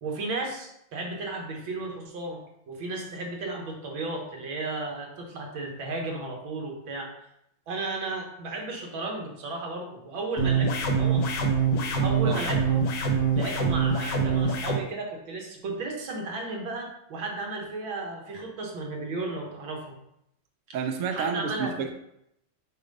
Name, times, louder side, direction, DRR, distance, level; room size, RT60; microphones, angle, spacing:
voice 1, 0.0-7.1 7.7-11.3 12.0-12.9 13.3-20.0 21.1-21.7, right 3 dB, 80° right, 1 dB, 1.9 m, -34 dB
sound 1, 10.4-14.8, right 4 dB, 60° left, 1.1 m, -24 dB
voice 2, 20.7-21.9, right 6 dB, 65° right, 4 dB, 0.8 m, -30 dB
6.8 x 2.6 x 5.2 m, 0.78 s
omnidirectional pair, 2.1 m